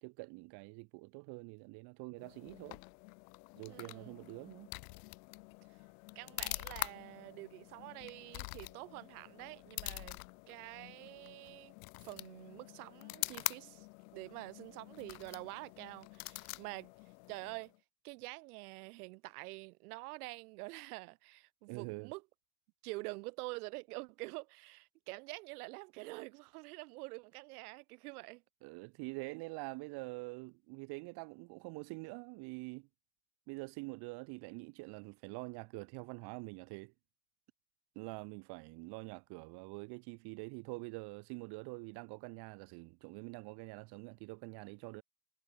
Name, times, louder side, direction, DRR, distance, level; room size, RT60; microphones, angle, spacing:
voice 1, 0.0-2.8 3.6-4.7 21.7-22.1 28.6-32.9 33.5-36.9 38.0-45.0, right 28 dB, 60° right, 2.1 m, -46 dB
sound 1, 2.2-17.8, left 29 dB, 90° left, 0.6 m, -46 dB
voice 2, 3.7-4.1 6.1-10.2 10.5-11.7 12.0-13.9 14.1-16.9 17.3-17.7 18.0-22.2 22.8-28.4, right 24 dB, 90° right, 3.2 m, -47 dB
cardioid pair, 145°, 43 cm